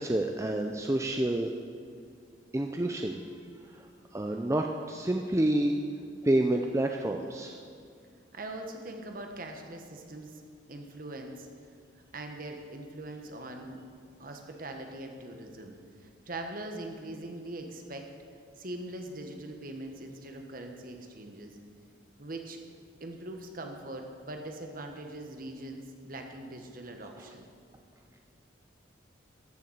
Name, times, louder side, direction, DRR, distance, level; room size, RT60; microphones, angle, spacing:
voice 1, 0.0-1.5 2.5-3.2 3.7-3.8 4.1-5.7 6.2-7.6, right 1 dB, 15° right, 3 dB, 0.5 m, -28 dB
voice 2, 8.3-10.4 10.7-11.5 12.1-13.8 14.2-18.1 18.6-21.6 22.2-22.6 23.0-27.5, right 1 dB, 45° right, 4 dB, 1.4 m, -42 dB
13.5 x 6.9 x 7.9 m, 2.3 s
head